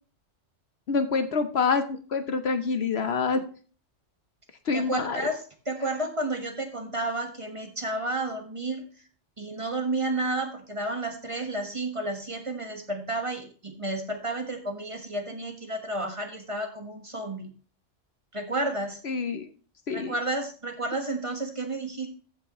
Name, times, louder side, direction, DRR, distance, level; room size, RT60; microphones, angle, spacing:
voice 1, 0.9-3.4 4.7-5.2 19.0-19.5 19.9-20.1, left 4 dB, 60° left, 9 dB, 1.0 m, -26 dB
voice 2, 4.7-8.9 9.4-17.5 18.3-19.0 19.9-22.1, right 2 dB, 25° right, 4 dB, 1.4 m, -31 dB
14.5 x 6.5 x 3.0 m, 0.39 s
omnidirectional pair, 1.3 m